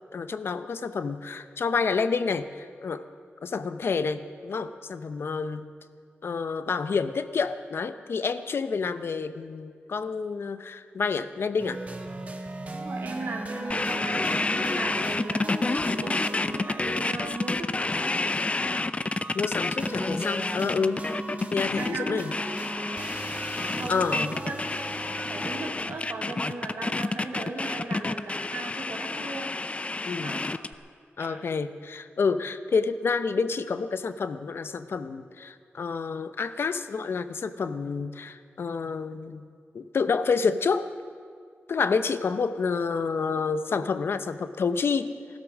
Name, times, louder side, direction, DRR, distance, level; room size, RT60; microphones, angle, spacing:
voice 1, 0.1-3.1 3.4-5.7 6.2-11.8 15.7-15.8 19.3-21.1 21.5-22.3 23.5-23.6 23.9-24.3 30.1-30.4 31.2-39.5 39.7-40.9 41.7-45.1, left 5 dB, 65° left, 12 dB, 0.7 m, -29 dB
sound 1, 11.6-25.7, right 2 dB, 35° right, 1.6 m, -38 dB
voice 2, 12.7-18.4 21.8-22.2 23.8-24.6 25.2-29.6 30.2-30.5 31.2-31.4, right 2 dB, 80° right, -1 dB, 2.7 m, -37 dB
sound 2, 13.7-30.7, left 3 dB, 30° left, 0.5 m, -29 dB
16.0 x 12.5 x 6.3 m, 2.1 s
cardioid pair, 70°, 4 cm